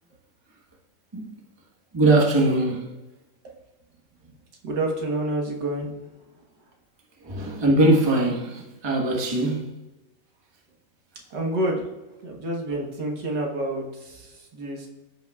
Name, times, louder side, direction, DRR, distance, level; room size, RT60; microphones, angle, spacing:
voice 1, 1.9-2.8 7.2-9.7, right 2 dB, 15° right, -1 dB, 1.0 m, -21 dB
voice 2, 4.6-5.9 11.3-11.9 12.2-14.9, right 1 dB, 70° right, 0 dB, 1.8 m, -28 dB
14.0 x 5.5 x 2.3 m, 1.0 s
omnidirectional pair, 2.0 m